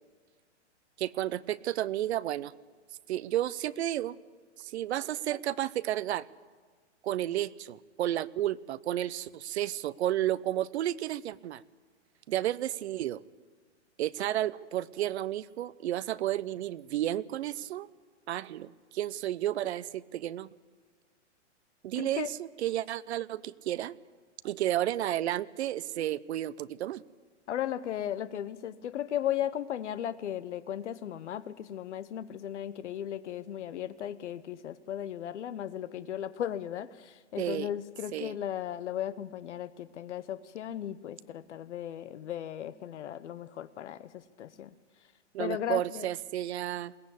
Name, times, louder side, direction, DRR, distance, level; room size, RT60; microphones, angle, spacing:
voice 1, 1.0-2.5 3.1-4.2 4.6-6.3 7.0-11.6 12.3-13.2 14.0-17.9 18.3-20.5 21.8-23.9 24.4-27.0 37.4-37.7 38.1-38.3 45.3-46.9, right 13 dB, 65° right, 17 dB, 0.7 m, -32 dB
voice 2, 22.0-22.3 27.5-44.7 45.4-46.1, left 10 dB, 75° left, 14 dB, 0.9 m, -36 dB
21.5 x 18.0 x 8.3 m, 1.5 s
hypercardioid pair, 145°, 36 cm